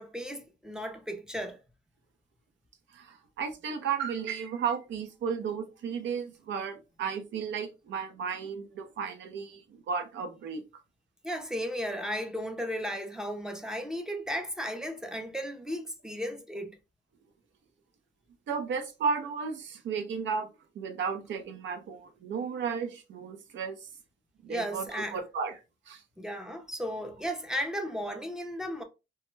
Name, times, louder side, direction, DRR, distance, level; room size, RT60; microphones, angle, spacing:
voice 1, 0.0-1.6 11.2-16.8 24.5-25.2 26.2-28.8, equal, 5° right, 0.5 m, -35 dB
voice 2, 2.9-10.6 18.5-20.5 20.8-23.9 24.4-25.5 25.9-26.0, right 6 dB, 70° right, 0.6 m, -34 dB
2.2 x 2.2 x 3.1 m
cardioid pair, 90°, 20 cm